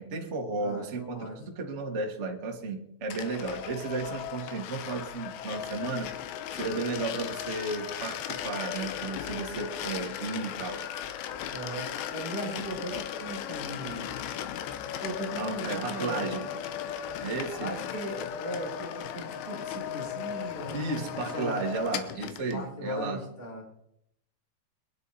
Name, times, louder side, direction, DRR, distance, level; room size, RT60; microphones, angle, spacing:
voice 1, 0.0-6.1 6.5-10.9 15.4-16.5 17.2-17.7 20.7-23.3, right 3 dB, 60° right, 1 dB, 0.7 m, -33 dB
voice 2, 0.6-1.4 11.5-14.1 15.0-16.3 17.6-21.6 22.5-23.6, right 1 dB, 20° left, -3 dB, 5.8 m, -38 dB
sound 1, 3.1-22.6, left 10 dB, 85° left, 3.2 m, -37 dB
23.5 x 10.5 x 4.2 m, 0.75 s
omnidirectional pair, 4.8 m